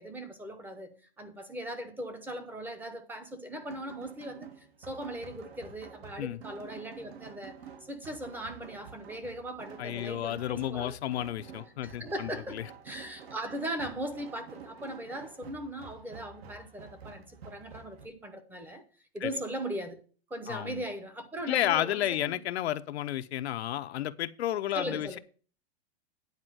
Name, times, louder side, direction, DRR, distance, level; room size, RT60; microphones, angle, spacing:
voice 1, 0.0-4.5 4.8-7.6 7.9-10.9 11.8-12.6 12.8-18.8 19.1-20.0 20.3-22.4 24.7-25.2, right 1 dB, 5° right, 0.7 m, -39 dB
sound 1, 3.6-18.0, right 6 dB, 75° right, 2.0 m, -49 dB
voice 2, 9.8-12.6 19.2-19.3 20.5-20.8 21.5-25.2, left 12 dB, 90° left, 0.7 m, -32 dB
9.6 x 4.4 x 7.6 m
supercardioid pair, 160°, 31 cm